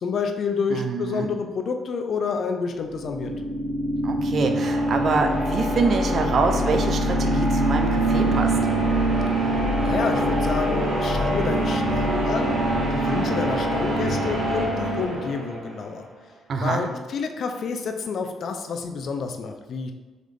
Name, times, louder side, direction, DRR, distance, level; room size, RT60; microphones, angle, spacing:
voice 1, 0.0-3.3 9.8-12.6 12.9-16.1 16.6-19.9, left 5 dB, 60° left, 5 dB, 0.4 m, -29 dB
voice 2, 0.7-1.3 4.0-8.6 16.5-16.8, right 4 dB, 55° right, 5 dB, 0.5 m, -25 dB
sound 1, 2.8-15.8, right 1 dB, 75° right, 0.9 m, -24 dB
3.8 x 3.1 x 3.3 m, 1.3 s
cardioid pair, 90°, 0 cm